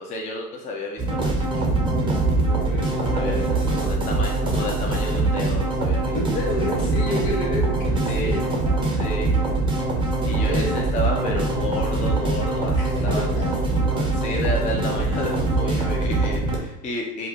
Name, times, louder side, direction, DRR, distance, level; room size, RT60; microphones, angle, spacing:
voice 1, 0.0-1.5 3.0-6.1 7.1-7.2 8.0-8.4 9.0-9.3 10.2-13.5 13.8-17.3, left 1 dB, 15° left, -1 dB, 0.6 m, -31 dB
sound 1, 1.0-16.6, right 2 dB, 10° right, 0.9 m, -23 dB
voice 2, 2.4-3.5 6.1-8.9 10.5-10.8 12.8-13.6, left 1 dB, 55° left, -1 dB, 1.5 m, -31 dB
4.7 x 2.6 x 4.0 m, 0.93 s
hypercardioid pair, 100°, 45 cm